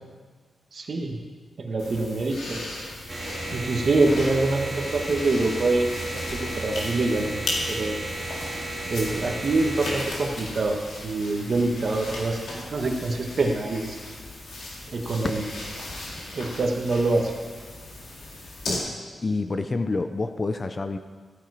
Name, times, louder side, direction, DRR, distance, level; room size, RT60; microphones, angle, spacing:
voice 1, 0.7-1.2 1.6-2.7 3.5-8.0 8.9-14.1 14.9-15.4 16.3-17.3, right 2 dB, 45° right, 2 dB, 1.5 m, -25 dB
sound 1, 1.8-18.7, left 2 dB, 75° left, 2.9 m, -37 dB
sound 2, 3.1-10.1, right 2 dB, 20° right, 2.0 m, -33 dB
voice 2, 19.2-21.0, left 3 dB, 25° left, 9 dB, 0.5 m, -28 dB
14.5 x 8.8 x 4.9 m, 1.5 s
wide cardioid pair, 165°, 0 cm